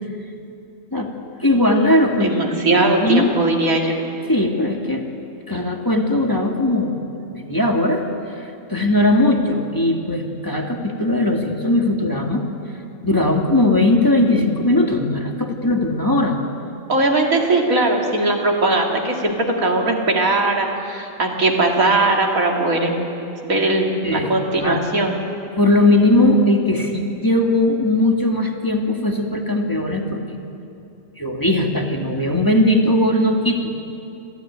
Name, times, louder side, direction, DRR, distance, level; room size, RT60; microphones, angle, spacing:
voice 1, 1.4-3.3 4.3-5.1 5.5-7.0 7.3-8.0 8.4-12.4 13.0-16.4 24.0-24.8 25.6-30.2 31.2-33.7, left 1 dB, 15° left, 1 dB, 1.8 m, -19 dB
voice 2, 2.2-4.0 16.9-22.9 23.4-25.2, right 2 dB, 85° right, 0 dB, 3.0 m, -19 dB
25.5 x 15.5 x 9.5 m, 2.7 s
omnidirectional pair, 1.4 m